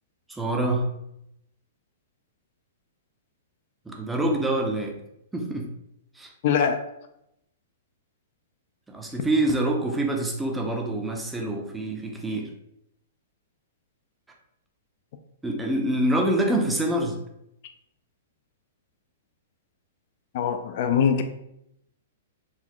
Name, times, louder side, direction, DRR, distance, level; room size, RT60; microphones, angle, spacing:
voice 1, 0.3-0.9 3.9-5.0 5.3-5.7 6.1-6.3 8.9-12.5 15.4-17.2, right 1 dB, 5° right, 1 dB, 0.5 m, -26 dB
voice 2, 6.4-6.8 20.3-21.2, left 7 dB, 50° left, 7 dB, 0.3 m, -22 dB
4.0 x 2.2 x 2.9 m, 0.80 s
hypercardioid pair, 145°, 0 cm